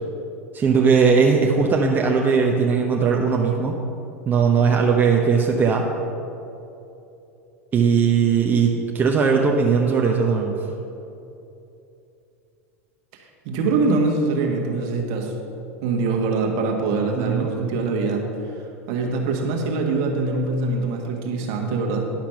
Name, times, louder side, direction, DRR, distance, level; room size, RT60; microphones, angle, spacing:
voice 1, 0.5-3.8 4.3-5.8 7.7-10.6 17.2-17.5, right 5 dB, 25° right, 0 dB, 0.8 m, -19 dB
voice 2, 13.4-15.3 15.8-18.2 18.9-22.1, right 3 dB, 50° right, 1 dB, 1.5 m, -23 dB
10.5 x 5.9 x 5.6 m, 2.8 s
figure-of-eight pair, 85°, 8 cm